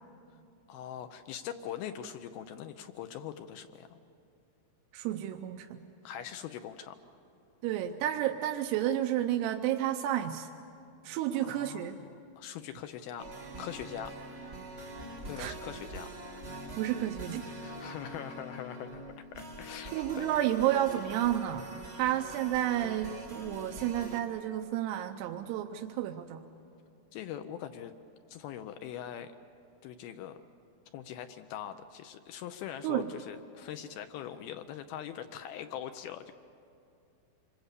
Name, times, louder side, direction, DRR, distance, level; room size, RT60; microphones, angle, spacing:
voice 1, 0.7-4.0 6.0-7.0 11.4-13.3 13.6-14.6 15.2-16.1 17.6-19.0 19.3-20.3 27.1-27.9 28.3-29.3 29.8-30.4 30.9-36.3, left 10 dB, 80° left, 8 dB, 2.4 m, -42 dB
voice 2, 4.9-5.8 7.6-10.5 11.0-12.0 15.4-15.5 16.8-17.5 19.9-26.4 32.8-33.1, right 12 dB, 85° right, 5 dB, 2.8 m, -31 dB
sound 1, 13.2-24.2, right 1 dB, 45° right, 0.8 m, -44 dB
26.0 x 22.5 x 8.2 m, 2.6 s
omnidirectional pair, 4.7 m